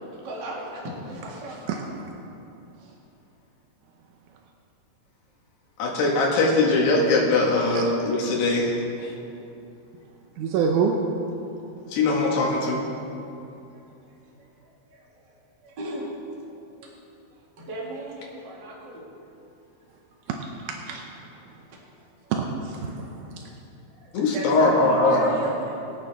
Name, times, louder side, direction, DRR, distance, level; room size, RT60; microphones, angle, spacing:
voice 1, 0.2-1.9 2.8-2.9 14.4-14.5 14.9-15.2 15.6-16.1 16.8-16.9 17.6-19.1 22.7-22.8 23.9-25.8, right 1 dB, 35° right, -4 dB, 2.1 m, -36 dB
voice 2, 1.7-2.1 7.7-7.8 10.4-11.0 20.3-21.1 22.3-22.5 22.8-23.5, right 6 dB, 80° right, 1 dB, 1.8 m, -27 dB
voice 3, 5.8-8.7 9.0-9.1 11.9-12.9 24.1-25.3, left 2 dB, 85° left, -3 dB, 4.1 m, -21 dB
23.0 x 9.0 x 3.6 m, 2.7 s
omnidirectional pair, 4.5 m